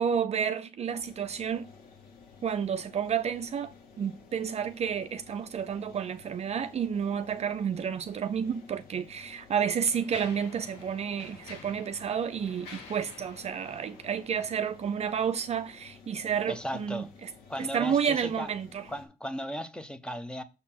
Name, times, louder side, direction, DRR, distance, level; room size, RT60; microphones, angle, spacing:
voice 1, 0.0-1.7 2.4-17.3 17.6-18.9, right 7 dB, 40° right, 0.5 m, -30 dB
sound 1, 0.8-19.1, left 5 dB, 65° left, 2.3 m, -53 dB
Mechanisms, 8.5-8.6 9.3-15.1, left 4 dB, 90° left, 2.2 m, -49 dB
voice 2, 16.5-17.1 17.5-18.5 18.9-20.4, equal, 5° left, 0.8 m, -36 dB
6.7 x 4.1 x 5.9 m
cardioid pair, 110°, 17 cm